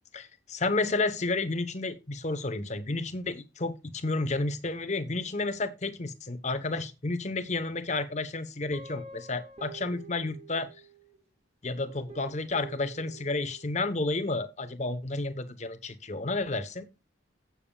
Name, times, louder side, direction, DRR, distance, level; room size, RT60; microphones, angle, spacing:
voice 1, 0.1-10.7 11.6-16.9, left 3 dB, 40° left, 0.9 m, -31 dB
Guitar, 8.7-11.2 11.9-13.8, right 3 dB, 30° right, 2.1 m, -48 dB
16.0 x 7.1 x 2.3 m
head